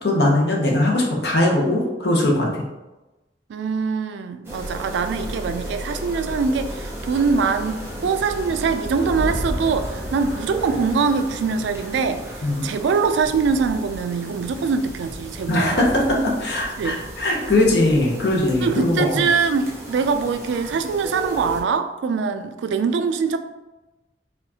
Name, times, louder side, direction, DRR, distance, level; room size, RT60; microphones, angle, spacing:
voice 1, 0.0-2.6 12.4-12.7 15.5-19.3, left 1 dB, 65° left, -1 dB, 0.8 m, -20 dB
voice 2, 3.5-15.9 16.8-17.0 18.6-23.4, right 5 dB, 85° right, 9 dB, 0.3 m, -23 dB
sound 1, 4.4-21.6, equal, 15° right, 0.7 m, -33 dB
4.2 x 2.4 x 2.7 m, 1.1 s
head